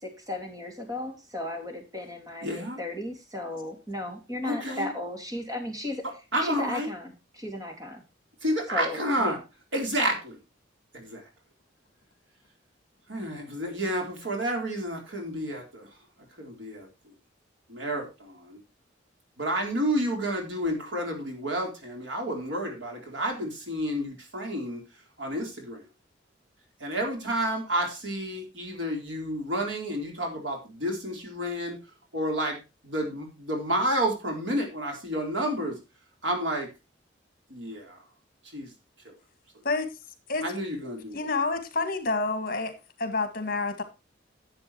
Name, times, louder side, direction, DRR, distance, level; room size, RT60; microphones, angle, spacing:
voice 1, 0.0-6.0 6.4-8.0 8.7-9.4, left 1 dB, 20° right, 2.8 m, -35 dB
voice 2, 2.4-2.8 4.4-4.9 6.3-6.9 8.4-9.4 9.7-10.4 10.9-11.2 13.1-16.0 16.4-17.1 17.7-18.6 19.4-24.8 25.2-25.9 26.8-31.8 32.1-32.6 32.8-35.8 36.2-36.7 37.5-38.0 38.4-38.7 39.0-39.1 40.4-41.3, right 1 dB, 80° right, 4.0 m, -30 dB
voice 3, 41.1-42.7 43.0-43.8, left 3 dB, 50° left, 1.9 m, -28 dB
11.0 x 7.9 x 4.3 m
head